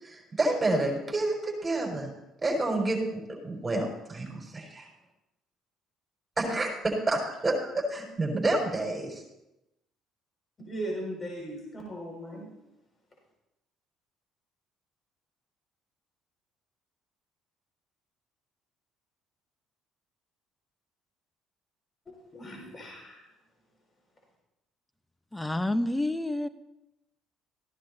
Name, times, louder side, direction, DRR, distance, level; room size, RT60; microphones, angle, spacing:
voice 1, 0.0-2.1 2.4-4.9 6.4-9.2, right 2 dB, 25° right, 6.0 m, -29 dB
voice 2, 10.6-12.5 22.1-23.2, right 1 dB, 30° left, 6.3 m, -38 dB
voice 3, 25.3-26.5, left 1 dB, 10° left, 1.1 m, -28 dB
18.0 x 16.0 x 2.9 m
figure-of-eight pair, 50°, 0 cm